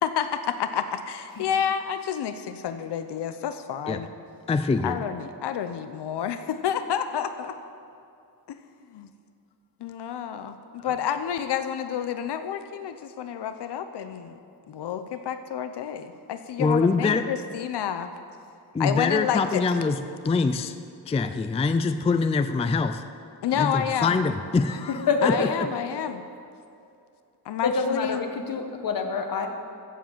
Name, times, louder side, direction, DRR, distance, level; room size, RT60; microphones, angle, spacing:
voice 1, 0.0-4.1 4.8-7.5 8.5-8.6 8.9-9.1 9.8-14.4 14.7-18.1 18.8-19.6 23.4-24.2 25.2-26.2 27.4-28.3, left 8 dB, 85° left, 10 dB, 0.8 m, -29 dB
voice 2, 4.5-5.0 10.8-10.9 16.6-17.2 18.7-20.0 20.2-20.7 21.1-23.0 23.5-25.3, left 4 dB, 15° left, 10 dB, 0.4 m, -24 dB
voice 3, 24.9-25.5 27.6-29.5, left 4 dB, 55° left, 5 dB, 1.4 m, -26 dB
15.0 x 7.6 x 7.3 m, 2.5 s
wide cardioid pair, 155°, 40 cm